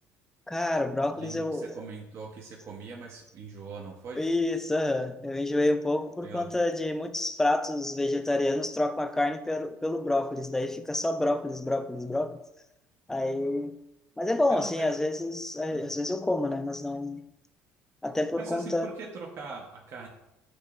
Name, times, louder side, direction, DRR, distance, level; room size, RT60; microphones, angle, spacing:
voice 1, 0.5-1.7 4.2-12.4 13.1-13.7 14.2-17.2 18.0-18.9, left 2 dB, 10° left, 0.4 m, -28 dB
voice 2, 1.2-4.2 6.2-6.5 14.5-15.0 15.7-15.9 18.4-20.1, right 4 dB, 50° right, 0.7 m, -41 dB
7.7 x 2.9 x 2.4 m
supercardioid pair, 95°, 6 cm